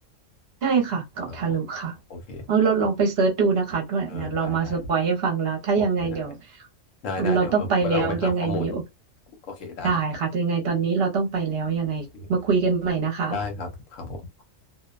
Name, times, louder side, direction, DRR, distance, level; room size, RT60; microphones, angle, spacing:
voice 1, 0.6-1.9 2.5-6.4 7.2-8.8 9.8-13.4, right 5 dB, 55° right, 0.9 m, -24 dB
voice 2, 2.1-2.4 4.1-4.8 5.8-6.3 7.0-8.8 9.5-9.9 12.1-12.3 13.3-14.4, left 4 dB, 75° left, 1.1 m, -33 dB
2.4 x 2.1 x 2.3 m
omnidirectional pair, 1.4 m